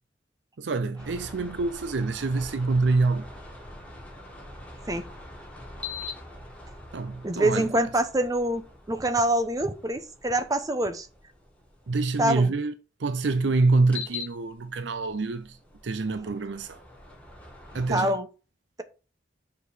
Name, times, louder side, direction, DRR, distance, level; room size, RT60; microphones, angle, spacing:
voice 1, 0.6-3.3 6.9-7.7 11.9-12.7 13.0-15.6 15.8-16.8 17.7-18.2, right 3 dB, 85° right, 0.6 m, -26 dB
sound 1, 1.0-12.3 13.8-18.0, left 3 dB, 10° left, 1.9 m, -43 dB
voice 2, 7.2-8.6 8.9-11.1 12.2-12.5 17.9-18.3, right 1 dB, 20° right, 0.8 m, -25 dB
6.5 x 5.2 x 4.9 m
head